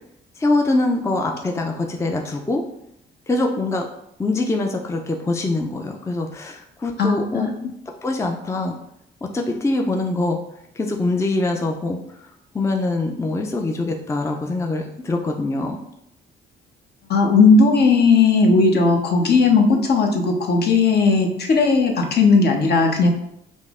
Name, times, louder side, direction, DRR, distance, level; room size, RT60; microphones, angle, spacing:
voice 1, 0.4-2.6 3.3-3.9 4.2-7.5 8.0-8.7 9.3-10.4 10.7-12.3 12.5-15.8, left 2 dB, 15° left, 3 dB, 0.4 m, -23 dB
voice 2, 7.0-7.5 17.1-23.1, left 4 dB, 55° left, 2 dB, 0.8 m, -16 dB
5.3 x 2.0 x 3.6 m, 0.76 s
cardioid pair, 90°, 20 cm